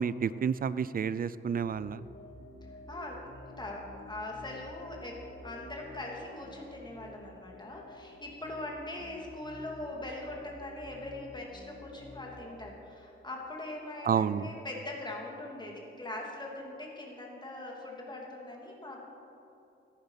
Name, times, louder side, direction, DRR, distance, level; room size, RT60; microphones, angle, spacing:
voice 1, 0.0-2.0 14.0-14.5, right 7 dB, 45° right, 16 dB, 0.4 m, -30 dB
sound 1, 1.4-12.6, left 1 dB, 70° left, 3.2 m, -50 dB
voice 2, 2.9-3.2 3.6-19.0, left 2 dB, 20° left, -1 dB, 2.9 m, -41 dB
14.5 x 10.5 x 5.8 m, 2.8 s
wide cardioid pair, 105°, 20 cm